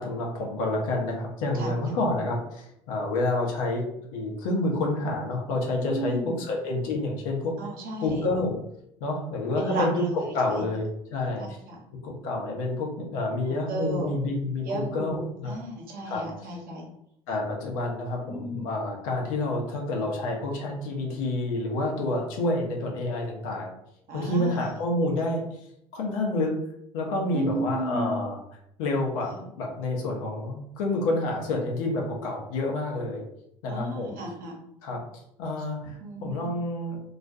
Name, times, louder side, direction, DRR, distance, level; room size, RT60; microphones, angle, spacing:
voice 1, 0.0-3.9 4.1-7.6 8.0-8.6 9.0-11.4 12.0-15.6 16.1-16.5 17.3-23.7 24.1-25.4 25.9-26.6 26.9-28.4 28.8-33.2 33.6-34.2 34.8-35.0 35.4-37.0, left 2 dB, 70° left, 0 dB, 0.7 m, -28 dB
voice 2, 5.9-6.4 7.6-8.3 9.6-10.6 11.4-11.8 13.4-14.1 14.6-16.9 18.3-18.7 24.1-24.6 27.3-28.2 29.2-29.3 33.7-34.6 36.0-36.5, right 1 dB, 50° right, 0 dB, 0.8 m, -34 dB
2.3 x 2.2 x 2.6 m, 0.76 s
hypercardioid pair, 60°, 18 cm